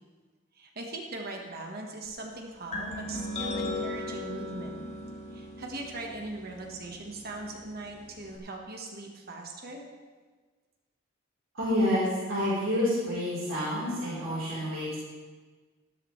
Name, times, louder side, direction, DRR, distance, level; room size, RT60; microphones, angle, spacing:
voice 1, 0.6-4.8 5.3-9.8, right 2 dB, 50° right, 1 dB, 1.4 m, -40 dB
sound 1, 2.7-8.4, left 2 dB, 35° left, 1.6 m, -38 dB
voice 2, 11.5-15.0, left 1 dB, 75° right, -9 dB, 4.0 m, -28 dB
13.5 x 12.5 x 3.3 m, 1.4 s
head